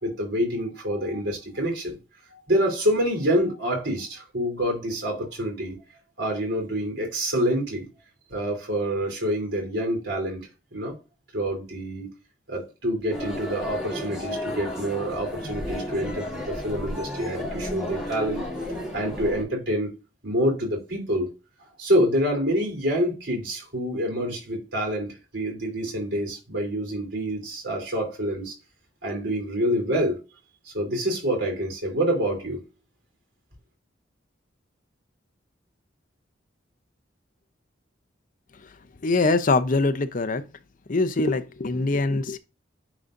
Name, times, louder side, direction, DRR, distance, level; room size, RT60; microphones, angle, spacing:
voice 1, 0.0-2.0 2.3-5.8 6.2-7.9 8.3-11.0 11.3-12.1 12.5-18.5 18.9-19.9 20.2-21.3 21.8-28.5 29.0-30.2 30.6-32.6, equal, 70° right, 3.1 m, -27 dB
sound 1, 13.1-19.4, left 1 dB, 5° right, 2.5 m, -33 dB
voice 2, 39.0-40.4 40.9-42.4, left 3 dB, 45° left, 0.6 m, -23 dB
9.2 x 4.0 x 2.5 m
head